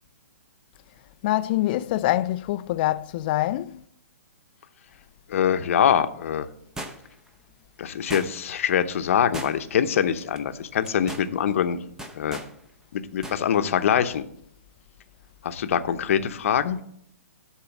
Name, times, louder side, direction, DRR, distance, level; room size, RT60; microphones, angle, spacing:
voice 1, 1.2-3.8, left 15 dB, 35° left, 0.4 m, -25 dB
voice 2, 5.3-6.5 7.8-11.8 12.1-12.4 12.9-14.2 15.4-16.8, left 8 dB, 60° left, 0.8 m, -24 dB
sound 1, 6.8-7.3 8.1-8.6 9.3-9.9 10.2-10.4 10.8-11.3 12.0-12.5 13.2-13.4 13.7-13.8, right 1 dB, 5° right, 0.7 m, -37 dB
10.5 x 4.5 x 7.0 m
hypercardioid pair, 145°, 8 cm